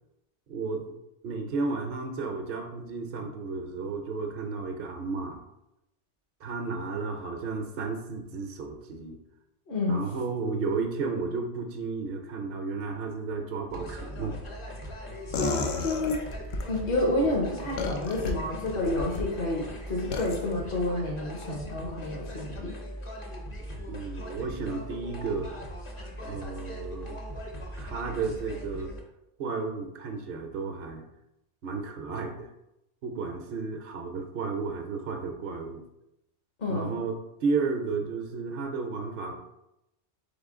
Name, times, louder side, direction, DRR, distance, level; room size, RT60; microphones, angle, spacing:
voice 1, 0.5-1.0 1.2-5.4 6.4-9.2 9.9-14.4 23.9-25.5 26.2-27.2 27.7-28.9 29.4-31.0 31.6-32.5 33.0-35.8 36.7-37.1 37.4-39.4, right 4 dB, 60° right, 3 dB, 0.7 m, -33 dB
voice 2, 9.7-10.0 15.4-16.2 16.7-22.7 36.6-37.0, left 2 dB, 55° left, -2 dB, 1.0 m, -29 dB
sound 1, 13.7-29.0, equal, 35° left, 0.7 m, -40 dB
sound 2, 15.3-16.7 17.8-18.3 18.9-19.3 20.1-20.4, left 4 dB, 80° left, 0.9 m, -31 dB
4.1 x 3.7 x 3.6 m, 0.86 s
omnidirectional pair, 1.2 m